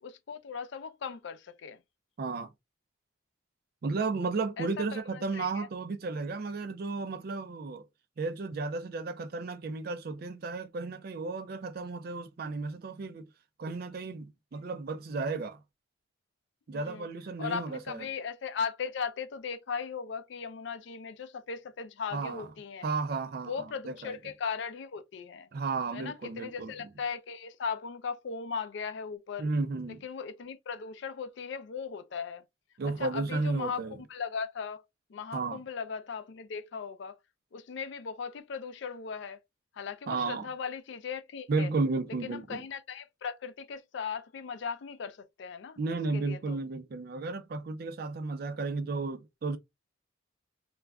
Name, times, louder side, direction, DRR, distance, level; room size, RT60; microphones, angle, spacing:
voice 1, 0.0-1.8 4.6-5.7 16.7-17.1 17.4-22.9 23.5-25.5 25.9-29.5 30.0-32.4 32.8-33.8 34.1-34.8 35.1-37.2 37.5-39.4 39.7-41.7 42.2-45.8 46.1-46.6, left 6 dB, 60° left, 0.4 m, -38 dB
voice 2, 2.2-2.5 3.8-7.8 8.2-13.3 13.6-15.6 16.7-18.1 22.1-22.5 22.8-23.5 23.9-24.2 25.5-26.9 29.4-30.0 32.8-34.0 35.3-35.6 40.1-40.5 41.5-42.6 45.8-49.6, right 3 dB, 50° right, 0.3 m, -33 dB
2.4 x 2.1 x 3.4 m
head